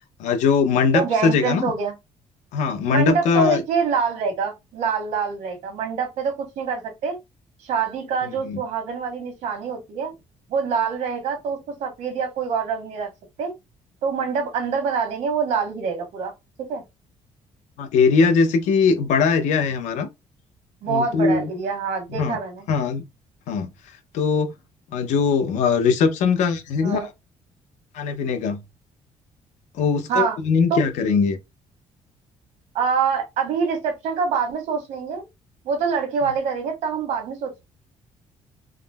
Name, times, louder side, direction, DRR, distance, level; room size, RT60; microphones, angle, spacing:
voice 1, 0.2-1.7 2.5-3.6 8.3-8.6 17.8-20.1 20.9-21.5 22.1-22.4 22.7-23.0 23.5-23.7 24.1-24.5 24.9-27.1 27.9-28.6 29.7-31.4, left 5 dB, 80° left, 0.5 m, -20 dB
voice 2, 0.9-1.9 2.9-7.2 7.6-10.1 10.5-13.1 13.4-13.5 14.0-16.3 16.6-16.8 20.8-22.7 26.8-27.1 30.1-30.4 30.7-30.8 32.7-35.2 35.6-37.6, right 6 dB, 75° right, 1.2 m, -25 dB
3.5 x 2.0 x 2.2 m
cardioid pair, 170°, 12 cm